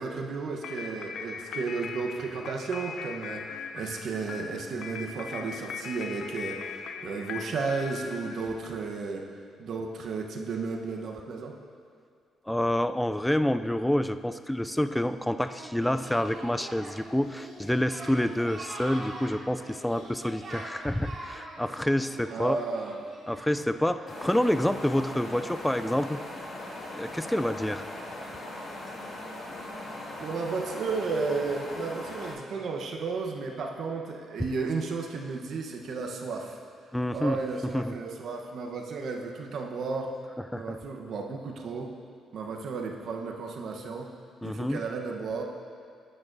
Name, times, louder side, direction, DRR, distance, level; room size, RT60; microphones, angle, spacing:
voice 1, 0.0-9.2 9.6-11.6 22.3-23.0 30.2-36.6 37.1-40.1 40.5-41.9 42.3-44.1 44.4-45.4, right 4 dB, 65° right, 1 dB, 0.9 m, -33 dB
sound 1, 0.6-8.9, left 5 dB, 70° left, 0.5 m, -40 dB
voice 2, 12.5-22.6 23.3-26.2 26.9-27.9 36.9-38.0 40.5-40.8 44.4-44.8, left 1 dB, 5° left, 11 dB, 0.3 m, -28 dB
Singing, 15.4-23.8, right 2 dB, 50° right, 2.4 m, -43 dB
sound 2, 24.1-32.3, left 1 dB, 55° left, 2.0 m, -40 dB
10.5 x 8.9 x 2.6 m, 2.2 s
cardioid pair, 90°, 0 cm